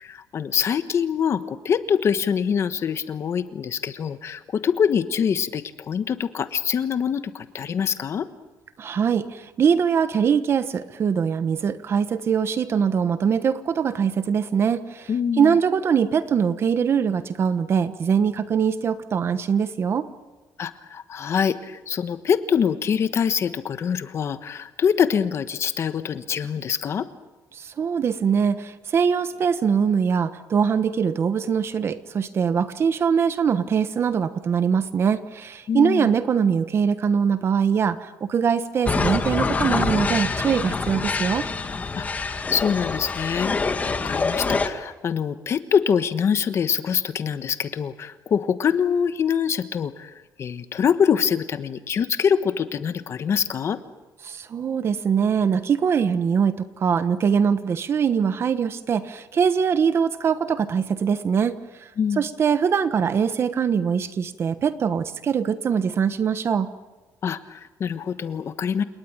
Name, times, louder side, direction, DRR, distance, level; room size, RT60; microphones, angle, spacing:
voice 1, 0.0-8.3 15.1-15.6 20.6-27.1 35.7-36.1 42.0-53.8 62.0-62.3 67.2-68.8, left 7 dB, 40° left, 11 dB, 1.2 m, -24 dB
voice 2, 8.8-15.1 15.4-20.1 27.5-41.4 54.2-61.9 62.2-66.7, right 7 dB, 40° right, 12 dB, 1.2 m, -22 dB
sound 1, 38.9-44.7, left 4 dB, 25° left, 1.7 m, -25 dB
29.5 x 19.0 x 8.9 m, 1.1 s
cardioid pair, 160°, 7 cm